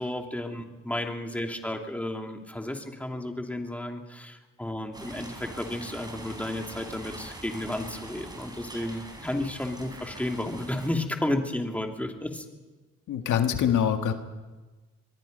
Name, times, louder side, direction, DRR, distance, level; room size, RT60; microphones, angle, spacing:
voice 1, 0.0-12.5, left 1 dB, 5° left, 3 dB, 2.6 m, -32 dB
sound 1, 4.9-10.9, right 1 dB, 15° right, 4.6 m, -43 dB
voice 2, 13.1-14.1, left 9 dB, 75° left, 6 dB, 1.7 m, -24 dB
23.5 x 22.5 x 5.3 m, 1.2 s
cardioid pair, 90°, 30 cm